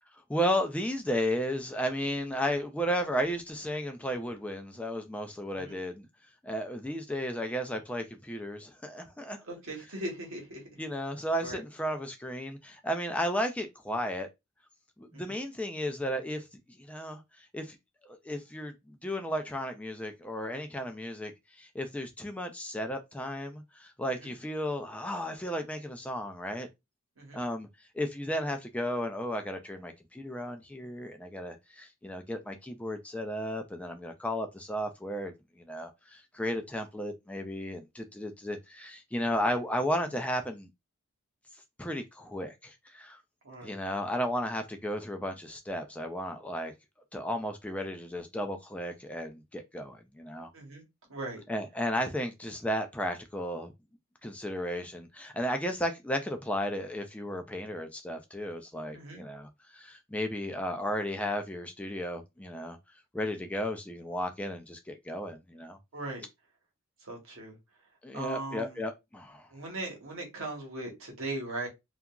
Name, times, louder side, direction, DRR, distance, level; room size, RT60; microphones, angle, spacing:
voice 1, 0.3-6.1 6.4-9.4 10.8-14.3 15.0-16.5 16.8-17.8 18.0-26.7 27.3-27.7 27.9-40.7 41.8-43.2 43.6-46.7 47.1-50.5 51.5-53.7 54.2-62.8 63.1-65.8 68.0-69.5, equal, 5° left, 0.3 m, -34 dB
voice 2, 9.5-10.6 11.4-11.6 15.1-15.4 24.2-24.3 27.2-27.4 40.0-40.2 43.4-43.7 50.5-50.8 51.1-51.4 58.9-59.2 65.9-66.2 67.0-67.6 68.1-68.8 69.5-71.7, right 2 dB, 70° right, 1.0 m, -39 dB
2.8 x 2.4 x 2.2 m
head